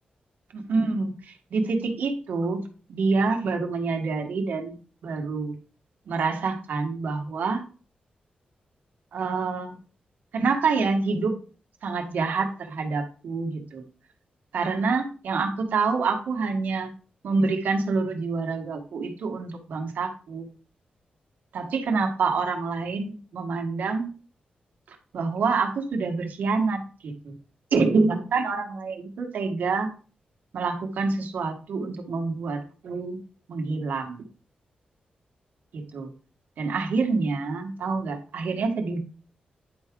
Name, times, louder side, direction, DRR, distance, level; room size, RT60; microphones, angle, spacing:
voice 1, 0.5-4.7 5.0-5.5 6.1-7.6 9.1-9.7 10.3-11.4 11.8-13.8 14.5-16.9 17.2-20.5 21.5-24.1 25.1-27.3 27.7-29.9 30.5-33.2 33.5-34.2 35.7-36.1 36.6-39.0, right 4 dB, 85° right, 4 dB, 1.5 m, -27 dB
10.0 x 4.7 x 3.8 m, 0.38 s
wide cardioid pair, 145°, 3 cm